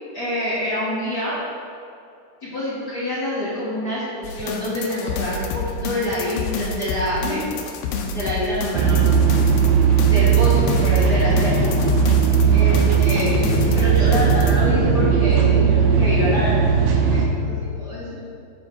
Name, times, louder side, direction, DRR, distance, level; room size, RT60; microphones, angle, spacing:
voice 1, 0.1-1.4 2.4-7.5 8.1-9.0 10.0-11.7 12.5-18.2, left 1 dB, 45° left, -11 dB, 1.5 m, -26 dB
sound 1, 4.2-14.5, left 4 dB, 80° left, 2.2 m, -28 dB
sound 2, 8.7-17.3, right 6 dB, 85° right, 2.4 m, -17 dB
7.1 x 5.1 x 4.6 m, 2.5 s
omnidirectional pair, 3.7 m